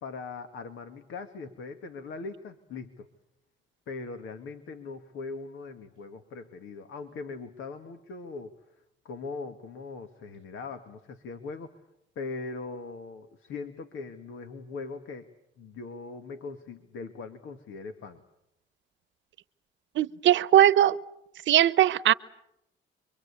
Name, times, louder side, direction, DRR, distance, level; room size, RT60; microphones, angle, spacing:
voice 1, 0.0-3.1 3.9-8.6 9.0-11.7 12.2-15.3 15.6-18.2, left 4 dB, 80° left, 2.0 m, -40 dB
voice 2, 20.0-21.0 21.5-22.1, right 12 dB, 70° right, 0.9 m, -20 dB
27.0 x 24.0 x 8.4 m
cardioid pair, 90°, 20 cm